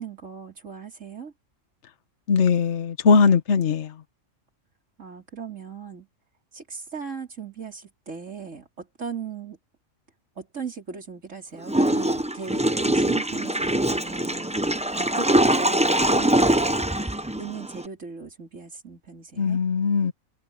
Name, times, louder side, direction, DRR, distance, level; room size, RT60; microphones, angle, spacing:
voice 1, 0.0-1.3 5.0-6.1 6.5-9.6 10.4-14.5 15.0-16.9 17.3-19.6, right 5 dB, 70° right, 4.1 m, -37 dB
voice 2, 2.3-3.9 19.4-20.1, left 5 dB, 60° left, 1.4 m, -20 dB
Water / Toilet flush, 11.7-17.9, right 1 dB, 5° right, 0.6 m, -23 dB
omnidirectional pair, 1.4 m